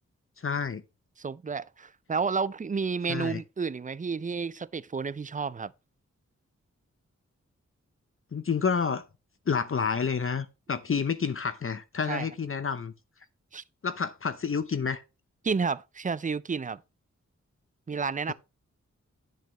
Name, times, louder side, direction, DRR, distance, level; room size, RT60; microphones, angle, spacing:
voice 1, 0.4-0.8 3.1-3.4 8.3-9.0 9.5-12.9 13.8-15.0, left 6 dB, 45° left, 0.7 m, -29 dB
voice 2, 1.2-5.7 12.1-12.3 13.5-13.6 15.4-16.8 17.9-18.3, right 5 dB, 30° right, 0.4 m, -31 dB
9.2 x 7.7 x 3.0 m
wide cardioid pair, 65°, 29 cm